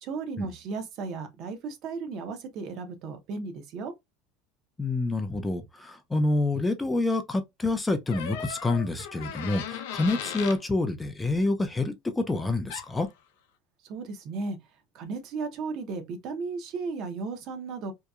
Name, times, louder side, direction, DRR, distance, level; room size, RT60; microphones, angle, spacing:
voice 1, 0.0-3.9 13.8-14.6 14.9-17.9, right 4 dB, 50° right, 0.7 m, -35 dB
voice 2, 4.8-13.1, left 2 dB, 10° left, 0.3 m, -27 dB
sound 1, 8.1-10.6 12.7-12.9, left 8 dB, 85° left, 0.5 m, -37 dB
2.8 x 2.1 x 2.3 m
supercardioid pair, 135°, 0 cm